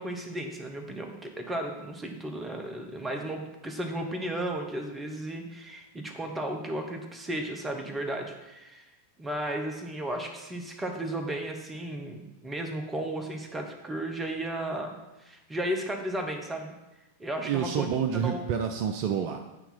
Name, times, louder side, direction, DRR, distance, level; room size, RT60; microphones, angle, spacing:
voice 1, 0.0-8.9 9.2-14.9 15.2-16.7 17.2-17.9 18.2-18.4, right 1 dB, 15° right, 3 dB, 1.0 m, -34 dB
voice 2, 17.4-19.4, right 8 dB, 45° right, 6 dB, 0.4 m, -28 dB
8.2 x 2.8 x 5.6 m, 1.0 s
figure-of-eight pair, 90°, 0 cm